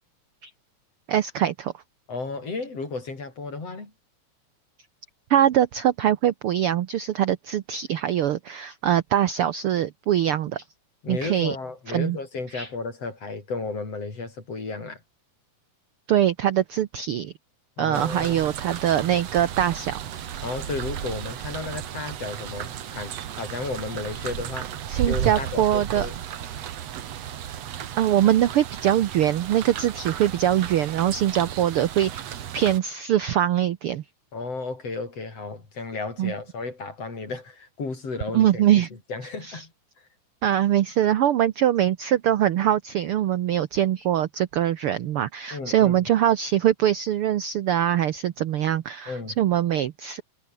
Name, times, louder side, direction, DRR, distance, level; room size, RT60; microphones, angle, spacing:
voice 1, 1.1-1.7 5.3-10.6 11.1-11.5 11.9-12.2 12.5-12.7 16.1-17.3 17.8-20.0 24.9-26.1 28.0-34.0 36.2-36.3 38.3-38.9 39.5-39.6 40.4-50.2, right 11 dB, 80° right, 1.2 m, -23 dB
voice 2, 2.1-3.9 11.0-15.0 17.8-18.5 20.4-24.8 25.0-26.1 34.3-39.7 40.0-40.1 45.5-46.1 49.1-49.3, left 3 dB, 50° left, 6.7 m, -33 dB
sound 1, 17.9-32.8, right 10 dB, 60° right, 2.4 m, -34 dB
omnidirectional pair, 3.7 m